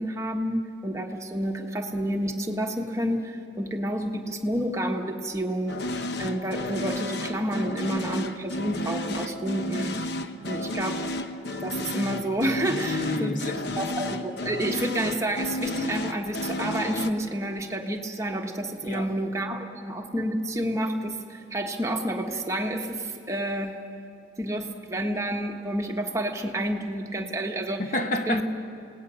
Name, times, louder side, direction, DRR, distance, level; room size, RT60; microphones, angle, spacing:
voice 1, 0.0-5.8 6.2-9.9 10.5-11.0 11.6-13.4 13.8-23.8 24.4-27.8 28.3-28.4, right 1 dB, 15° right, 1.4 m, -29 dB
sound 1, 5.7-17.1, left 1 dB, 60° left, 0.9 m, -32 dB
voice 2, 12.7-13.6 18.8-19.1 27.9-28.4, left 1 dB, 45° left, 1.3 m, -29 dB
29.0 x 18.5 x 6.4 m
head